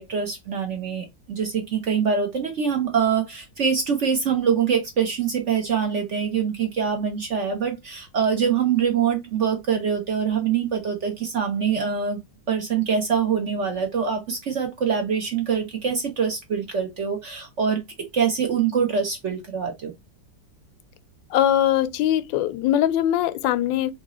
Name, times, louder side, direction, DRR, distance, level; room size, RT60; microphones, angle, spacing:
voice 1, 0.0-12.2 12.5-19.9, right 7 dB, 55° right, 0.8 m, -24 dB
voice 2, 21.3-23.9, left 11 dB, 85° left, 1.3 m, -21 dB
4.0 x 2.7 x 3.6 m
omnidirectional pair, 2.0 m